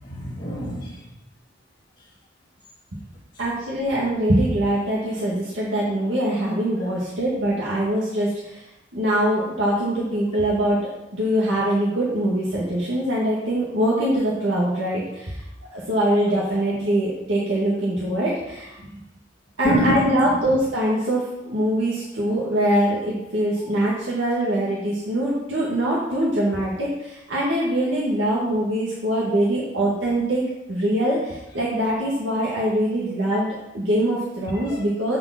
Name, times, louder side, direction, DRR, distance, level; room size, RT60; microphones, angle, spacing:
voice 1, 0.0-1.0 19.6-20.5 33.3-33.4 34.7-34.8, right 1 dB, 30° left, -9 dB, 1.9 m, -25 dB
voice 2, 3.4-15.4 15.7-18.9 19.6-35.2, right 1 dB, 85° right, -6 dB, 1.8 m, -23 dB
8.4 x 5.1 x 5.8 m, 0.93 s
head